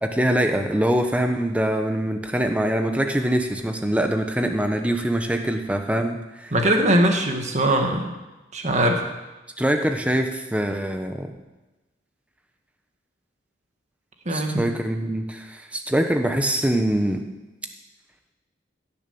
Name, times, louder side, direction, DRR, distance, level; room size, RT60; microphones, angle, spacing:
voice 1, 0.0-6.5 9.6-11.3 14.3-17.2, right 1 dB, 5° right, 5 dB, 1.0 m, -23 dB
voice 2, 6.5-8.1 8.5-9.0 14.3-14.7, right 1 dB, 35° right, 3 dB, 1.7 m, -21 dB
16.5 x 7.1 x 7.0 m, 1.1 s
head